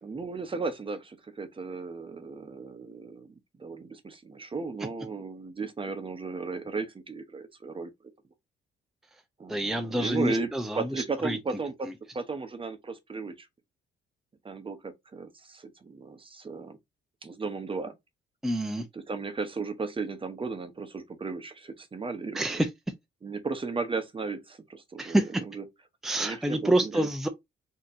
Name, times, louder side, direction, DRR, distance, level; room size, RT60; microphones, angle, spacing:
voice 1, 0.0-7.9 9.4-11.9 12.1-13.5 14.4-16.8 17.2-18.0 18.9-22.6 23.2-25.2 25.5-25.6 26.2-27.0, right 4 dB, 25° right, 0.9 m, -35 dB
voice 2, 9.5-11.4 18.4-18.9 22.3-22.7 25.0-25.4 26.0-27.3, right 1 dB, ahead, 0.6 m, -27 dB
4.1 x 3.0 x 2.6 m
cardioid pair, 90°, 20 cm